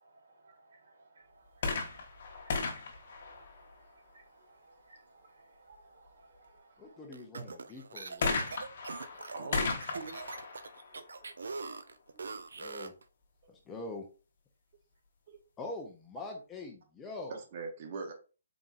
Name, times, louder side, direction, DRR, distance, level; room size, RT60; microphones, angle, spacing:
voice 1, 0.0-7.1 9.0-10.2, right 3 dB, 60° right, 1.1 m, -52 dB
sound 1, 1.5-4.1 8.2-11.8 12.6-12.7, left 4 dB, 45° left, 0.9 m, -36 dB
voice 2, 6.8-8.4 12.6-12.9 13.5-14.1 15.6-17.4, left 2 dB, 10° left, 0.5 m, -44 dB
sound 2, 7.1-13.0, right 4 dB, 80° right, 0.4 m, -43 dB
voice 3, 10.9-11.8 12.1-12.3 15.3-15.4 17.3-18.1, right 4 dB, 35° right, 0.8 m, -44 dB
3.9 x 3.5 x 2.4 m
hypercardioid pair, 170°, 0 cm